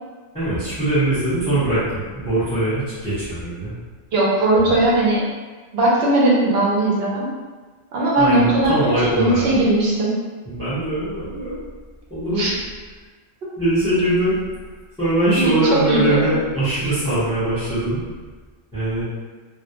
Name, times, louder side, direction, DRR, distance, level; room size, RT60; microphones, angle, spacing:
voice 1, 0.3-3.7 8.2-9.4 10.5-11.6 12.1-12.5 13.6-14.4 15.0-18.0 18.7-19.0, right 1 dB, 5° left, -13 dB, 0.7 m, -21 dB
voice 2, 4.1-5.2 5.7-7.3 7.9-10.1 12.4-12.5 15.3-15.5 15.9-16.3, right 1 dB, 65° right, -5 dB, 0.8 m, -18 dB
2.2 x 2.0 x 2.8 m, 1.4 s
omnidirectional pair, 1.2 m